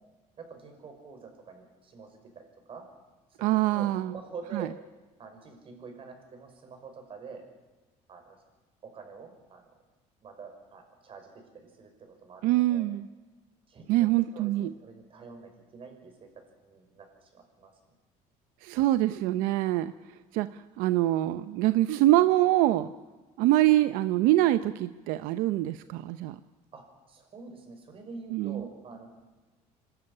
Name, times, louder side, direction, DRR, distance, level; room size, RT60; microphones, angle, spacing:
voice 1, 0.4-2.9 3.4-4.7 5.2-7.4 8.1-8.4 8.8-9.6 10.2-12.9 13.7-14.1 14.3-16.3 16.6-17.7 26.7-29.1, right 4 dB, 40° right, 4 dB, 5.8 m, -46 dB
voice 2, 3.4-4.1 4.5-4.7 12.4-13.1 13.9-14.7 18.6-19.9 20.3-22.9 23.4-26.4 28.3-28.6, right 15 dB, 85° right, 12 dB, 0.7 m, -24 dB
26.5 x 13.0 x 9.8 m, 1.2 s
cardioid pair, 120°, 14 cm